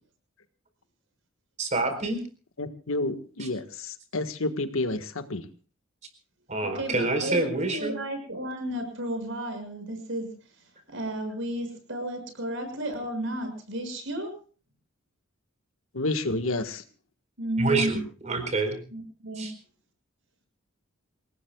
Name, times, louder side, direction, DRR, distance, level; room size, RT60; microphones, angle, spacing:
voice 1, 1.6-2.2 3.4-3.5 6.5-8.0 17.6-18.0 18.2-18.8 19.4-19.5, right 3 dB, 35° right, 7 dB, 4.4 m, -27 dB
voice 2, 2.6-5.4 15.9-16.8, left 2 dB, 85° left, 8 dB, 1.6 m, -30 dB
voice 3, 6.6-10.3 10.9-14.3 17.4-18.0 18.9-19.5, right 1 dB, 65° right, 6 dB, 6.7 m, -33 dB
27.5 x 18.5 x 2.4 m, 0.39 s
head